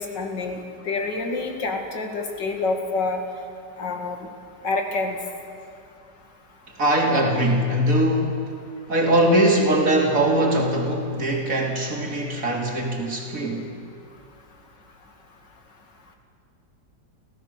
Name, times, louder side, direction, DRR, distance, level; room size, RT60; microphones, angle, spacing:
voice 1, 0.0-3.2 3.8-4.2 4.6-5.2, left 3 dB, 75° left, 3 dB, 2.9 m, -27 dB
voice 2, 6.8-8.4 8.9-13.7, right 1 dB, 50° right, 0 dB, 3.3 m, -21 dB
29.5 x 16.0 x 6.8 m, 2.3 s
omnidirectional pair, 1.9 m